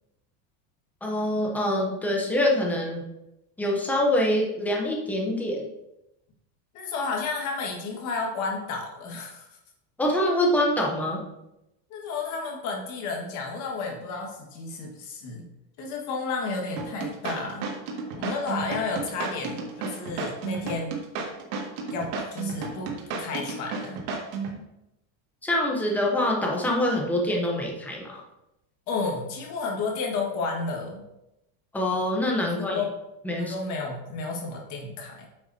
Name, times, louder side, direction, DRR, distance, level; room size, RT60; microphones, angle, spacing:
voice 1, 1.0-3.0 3.6-5.6 10.0-11.2 25.4-28.2 31.7-32.8 33.2-33.5, left 1 dB, 5° left, -1 dB, 0.6 m, -25 dB
voice 2, 6.7-9.5 11.9-15.5 15.8-17.7 18.2-21.0 21.9-24.0 28.9-31.0 32.5-32.9 33.4-35.3, left 4 dB, 35° left, 0 dB, 1.6 m, -32 dB
sound 1, 16.8-24.6, right 4 dB, 90° right, 1.9 m, -32 dB
9.4 x 6.3 x 2.7 m, 0.88 s
cardioid pair, 180°, 48 cm